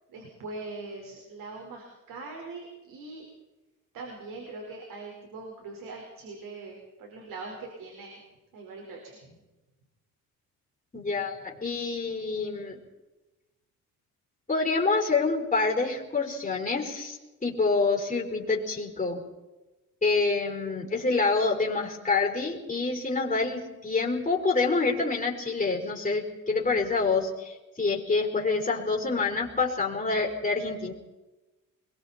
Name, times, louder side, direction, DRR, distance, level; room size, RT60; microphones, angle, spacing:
voice 1, 0.1-3.3 3.9-8.2 8.5-9.4 11.0-11.1, right 3 dB, 75° right, 0 dB, 5.3 m, -42 dB
voice 2, 10.9-12.8 14.5-19.2 20.0-30.9, left 3 dB, 20° left, 0 dB, 4.9 m, -27 dB
26.0 x 22.0 x 4.5 m, 1.1 s
cardioid pair, 125°, 33 cm